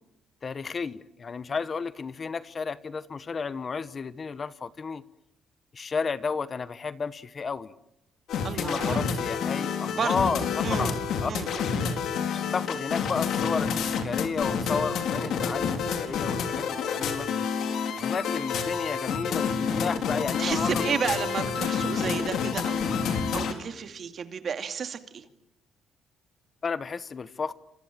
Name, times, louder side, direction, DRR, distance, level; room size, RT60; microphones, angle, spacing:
voice 1, 0.4-5.0 5.7-7.7 8.5-10.4 10.8-11.3 12.3-17.3 17.9-20.8 21.1-21.2 26.6-27.5, left 5 dB, 30° left, 14 dB, 1.1 m, -32 dB
sound 1, 8.3-23.5, left 6 dB, 70° left, 4.2 m, -28 dB
voice 2, 8.4-9.0 9.9-10.3 10.6-10.9 11.3-11.7 20.4-25.2, right 6 dB, 45° right, 8 dB, 2.5 m, -32 dB
29.0 x 26.5 x 7.5 m, 0.84 s
cardioid pair, 135°, 0 cm